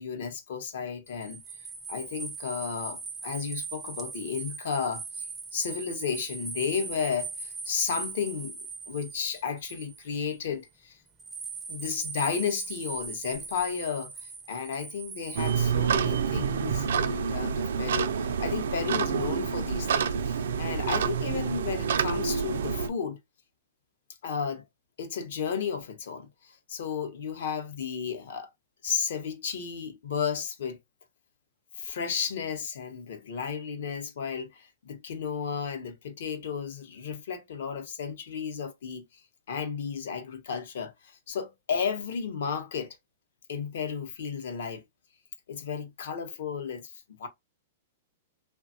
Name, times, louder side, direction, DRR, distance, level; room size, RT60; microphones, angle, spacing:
voice 1, 0.0-1.4 1.9-5.3 5.5-8.6 8.9-11.0 11.7-23.2 24.2-24.6 25.0-28.5 28.8-30.8 31.7-39.1 39.5-43.0 43.5-44.8 45.5-47.3, left 6 dB, 65° left, 0.7 m, -33 dB
sound 1, 1.1-10.3 11.2-15.5, right 4 dB, 5° right, 0.4 m, -39 dB
sound 2, 15.4-22.9, right 7 dB, 85° right, 0.4 m, -28 dB
3.2 x 2.2 x 2.6 m
supercardioid pair, 170°, 0 cm